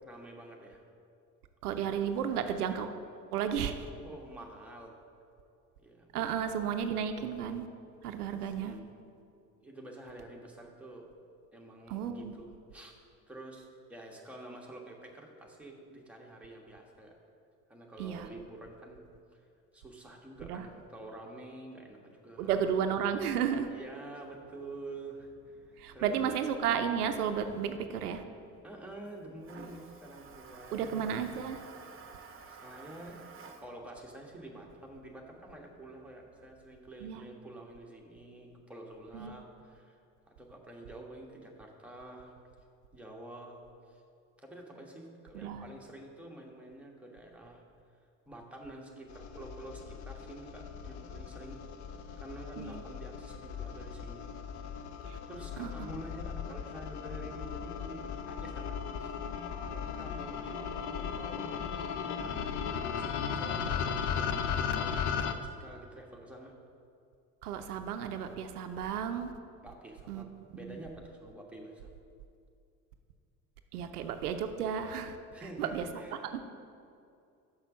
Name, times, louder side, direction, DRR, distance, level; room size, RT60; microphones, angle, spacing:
voice 1, 0.0-0.8 4.0-5.0 5.8-6.2 8.2-8.9 9.6-11.1 11.5-13.0 13.3-17.2 17.7-19.0 19.3-19.5 19.7-22.6 23.7-26.3 28.6-31.3 32.5-40.0 40.3-42.3 42.9-43.6 43.9-44.0 44.4-47.6 48.3-51.6 52.2-54.3 55.3-59.2 59.6-66.5 69.6-71.9 75.3-76.4, right 1 dB, 5° right, -1 dB, 1.4 m, -48 dB
voice 2, 1.6-2.9 3.3-3.7 6.1-7.7 8.0-8.8 11.9-12.3 18.0-18.3 20.4-20.7 22.4-23.7 25.8-28.2 30.7-31.6 37.0-37.2 39.1-39.4 45.3-45.6 52.6-52.8 55.0-55.2 55.6-55.9 67.4-69.3 70.1-70.3 70.6-70.8 73.7-75.2 75.6-76.0 76.3-76.4, right 8 dB, 85° right, 8 dB, 0.6 m, -33 dB
Toilet flush, 24.2-36.5, right 4 dB, 30° right, 0.9 m, -55 dB
sound 1, 49.1-65.3, left 7 dB, 40° left, 0.6 m, -37 dB
6.3 x 6.0 x 6.0 m, 2.5 s
hypercardioid pair, 60°, 44 cm